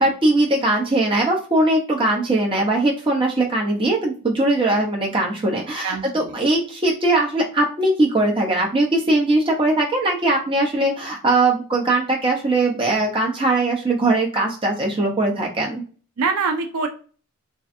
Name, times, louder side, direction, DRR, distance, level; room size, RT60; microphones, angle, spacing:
voice 1, 0.0-15.8, right 2 dB, 25° right, -1 dB, 0.8 m, -20 dB
voice 2, 5.8-6.4 16.2-16.9, right 4 dB, 75° right, 6 dB, 0.5 m, -24 dB
3.1 x 2.5 x 2.6 m, 0.39 s
head